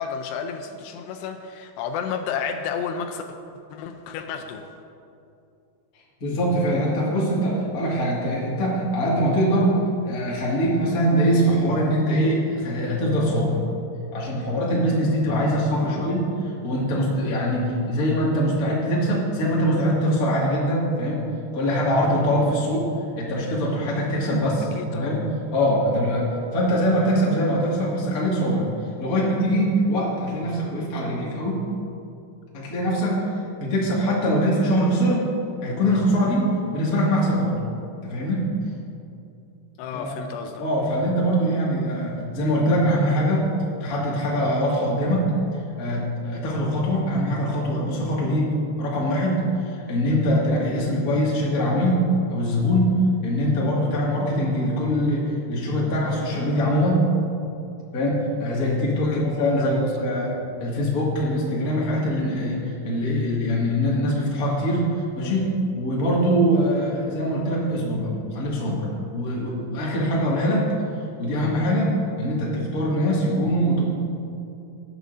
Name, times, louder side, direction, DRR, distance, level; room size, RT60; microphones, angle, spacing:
voice 1, 0.0-3.2 3.7-4.7 15.7-16.1 24.8-25.3 39.8-40.6 59.0-59.2 59.6-59.9, left 7 dB, 85° left, 5 dB, 2.6 m, -32 dB
voice 2, 6.2-13.6 14.1-16.3 16.6-21.2 21.5-22.9 23.1-28.6 29.0-31.6 32.5-33.3 33.6-35.2 35.6-36.5 36.7-37.6 38.0-38.5 39.9-40.1 40.6-43.5 43.8-45.3 45.8-53.0 53.2-57.1 57.9-70.7 71.2-73.9, equal, 40° left, -5 dB, 1.2 m, -23 dB
18.5 x 8.0 x 2.6 m, 2.6 s
omnidirectional pair, 5.0 m